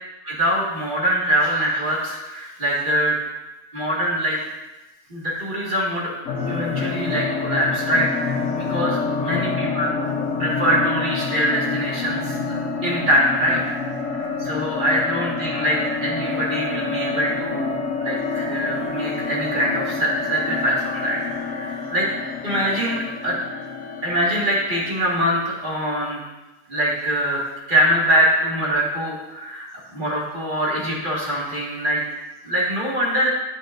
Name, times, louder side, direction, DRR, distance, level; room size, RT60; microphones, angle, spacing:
voice 1, 0.2-3.2 3.7-4.4 5.1-6.1 6.5-9.9 10.4-12.6 12.8-13.6 14.1-21.2 21.5-22.1 22.4-23.4 24.0-26.2 26.7-27.4 27.7-32.0 32.4-33.3, equal, 30° right, -4 dB, 1.9 m, -23 dB
sound 1, 6.3-25.2, left 4 dB, 60° left, 1.0 m, -27 dB
8.7 x 8.2 x 2.5 m, 1.1 s
omnidirectional pair, 1.7 m